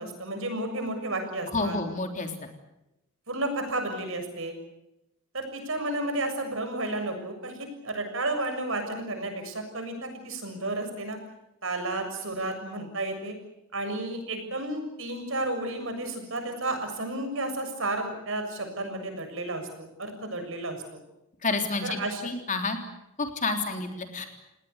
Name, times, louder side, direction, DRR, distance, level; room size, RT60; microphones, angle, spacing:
voice 1, 0.0-1.8 3.3-4.6 5.3-11.2 11.6-13.3 13.7-20.8 21.8-22.2 23.7-23.8, right 2 dB, 65° right, 6 dB, 7.0 m, -32 dB
voice 2, 1.5-2.3 21.4-22.0 22.2-22.8 23.2-24.3, left 3 dB, 35° left, 5 dB, 3.6 m, -29 dB
30.0 x 19.0 x 8.2 m, 0.88 s
head